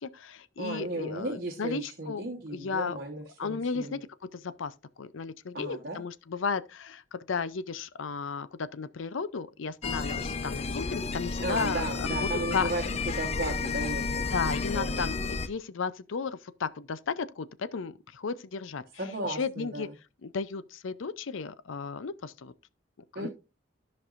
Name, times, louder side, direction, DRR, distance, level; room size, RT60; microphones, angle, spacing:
voice 1, 0.0-2.2 2.5-3.0 3.4-4.1 4.3-12.7 14.3-18.8 19.2-19.9 20.2-22.5 23.1-23.3, left 5 dB, 85° left, 0.5 m, -34 dB
voice 2, 0.6-4.0 5.5-6.0 11.4-12.8 13.2-15.0 19.0-19.9 23.1-23.3, right 1 dB, 50° right, 1.2 m, -35 dB
sound 1, 9.8-15.5, left 4 dB, 30° left, 0.5 m, -32 dB
13.5 x 5.3 x 2.5 m
head